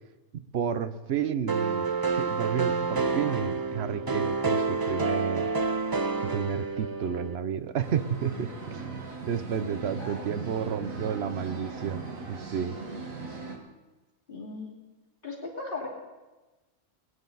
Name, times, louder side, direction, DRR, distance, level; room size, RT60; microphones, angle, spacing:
voice 1, 0.5-1.9 2.2-5.5 6.2-8.8 9.2-12.8, right 8 dB, 60° right, 12 dB, 0.9 m, -31 dB
sound 1, 1.5-7.4, right 4 dB, 30° right, 0.4 m, -28 dB
sound 2, 7.8-13.6, right 4 dB, 85° right, 2.0 m, -39 dB
voice 2, 10.0-10.4 14.3-14.7 15.2-15.9, left 3 dB, 40° left, -3 dB, 3.1 m, -38 dB
21.0 x 9.7 x 4.0 m, 1.2 s
omnidirectional pair, 1.3 m